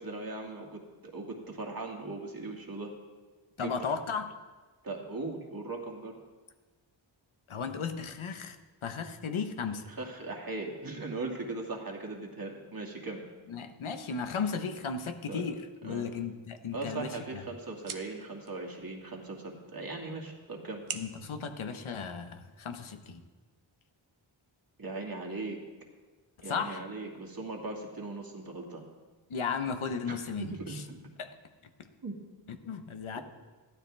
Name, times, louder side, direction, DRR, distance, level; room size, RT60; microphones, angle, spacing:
voice 1, 0.0-2.9 3.6-3.9 4.8-6.1 9.9-13.2 15.3-15.5 15.8-16.0 16.7-20.8 24.8-25.6 26.4-28.8 30.0-31.1 32.0-32.1 33.2-33.3, right 3 dB, 45° right, 1 dB, 2.3 m, -39 dB
voice 2, 3.6-4.4 7.5-9.9 13.5-17.4 20.9-23.2 26.4-26.8 29.3-30.8 31.2-31.3 31.8-31.9 32.6-33.2, left 5 dB, 75° left, 8 dB, 1.1 m, -35 dB
sound 1, 16.6-22.6, right 7 dB, 75° right, 1.0 m, -48 dB
14.5 x 12.0 x 3.5 m, 1.3 s
wide cardioid pair, 70°, 49 cm